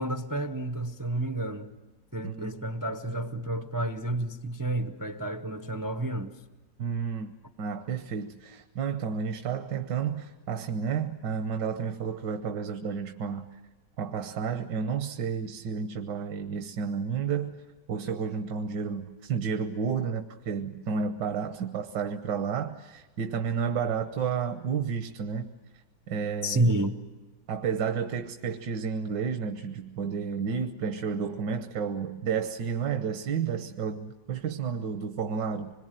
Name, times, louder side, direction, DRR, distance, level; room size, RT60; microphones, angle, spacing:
voice 1, 0.0-1.7 2.1-6.4 26.4-27.0, right 1 dB, 20° right, 0.5 m, -30 dB
voice 2, 2.2-2.5 6.8-13.6 14.0-17.6 17.9-25.5 26.1-26.7 27.5-35.7, right 6 dB, 80° right, 1.6 m, -31 dB
25.5 x 22.0 x 9.1 m
omnidirectional pair, 1.9 m